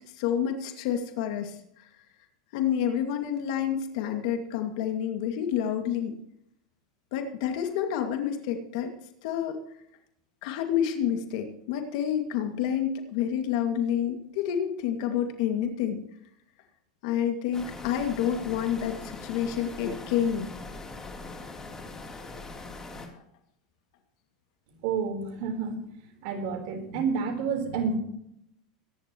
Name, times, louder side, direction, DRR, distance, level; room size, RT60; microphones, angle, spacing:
voice 1, 0.1-1.9 2.5-6.1 7.1-8.9 9.2-9.6 10.4-16.0 17.0-20.5, left 9 dB, 65° left, 5 dB, 2.2 m, -29 dB
sound 1, 17.5-23.1, left 3 dB, 15° left, 3.3 m, -41 dB
voice 2, 24.8-25.8 26.2-28.0, right 5 dB, 60° right, 5 dB, 3.9 m, -29 dB
23.0 x 11.0 x 3.1 m, 0.74 s
hypercardioid pair, 115°, 4 cm